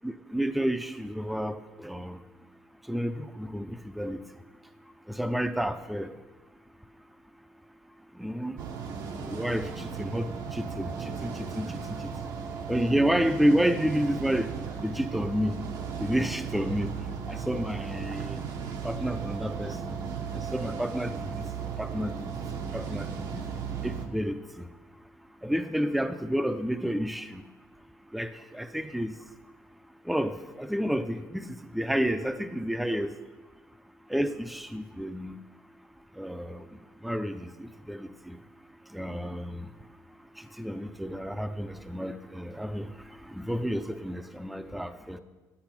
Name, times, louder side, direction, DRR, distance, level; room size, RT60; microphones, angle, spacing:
voice 1, 0.0-2.2 2.9-4.2 5.1-6.1 8.1-8.6 9.3-10.2 10.5-12.1 12.7-14.5 14.8-15.6 16.0-16.9 17.3-18.4 18.8-20.0 20.3-21.4 21.8-22.3 22.7-23.4 23.8-24.7 25.4-27.4 28.1-29.1 30.0-31.5 31.7-33.1 34.1-35.4 36.2-36.7 37.0-38.4 38.9-39.7 40.4-45.2, equal, ahead, 9 dB, 0.5 m, -30 dB
sound 1, 8.6-24.1, right 6 dB, 75° right, 1.1 m, -36 dB
9.3 x 8.8 x 5.9 m, 1.2 s
cardioid pair, 110°, 7 cm